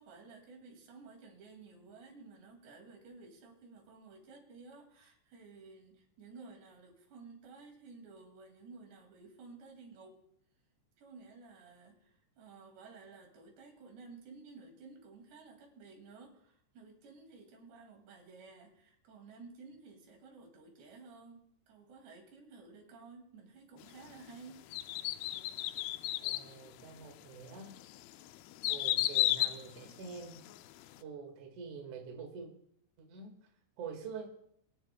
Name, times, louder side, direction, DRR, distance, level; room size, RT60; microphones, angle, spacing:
voice 1, 0.0-10.2 11.0-24.6, right 4 dB, 70° right, 1 dB, 4.5 m, -54 dB
sound 1, 24.7-26.5 27.1-27.2 27.8-30.6 30.9-31.0, left 14 dB, 90° left, 2.2 m, -33 dB
voice 2, 26.2-27.7 28.7-30.5 31.0-32.5 33.0-33.4 33.8-34.3, right 5 dB, 55° right, 1 dB, 2.7 m, -46 dB
24.0 x 10.0 x 2.2 m, 0.69 s
omnidirectional pair, 5.1 m